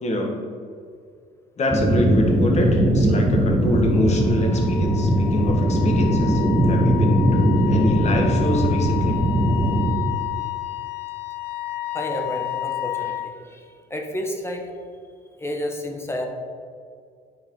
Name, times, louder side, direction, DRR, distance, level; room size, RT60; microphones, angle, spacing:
voice 1, 0.0-0.4 1.6-9.2, left 1 dB, 40° left, 1 dB, 1.5 m, -26 dB
sound 1, 1.7-9.9, equal, 5° right, 1.0 m, -20 dB
Wind instrument woodwind instrument, 3.9-13.3, left 15 dB, 75° left, 0.6 m, -31 dB
voice 2, 11.9-14.7 15.4-16.3, left 1 dB, 15° left, 3 dB, 1.1 m, -31 dB
10.5 x 4.5 x 3.7 m, 2.2 s
cardioid pair, 110°, 17 cm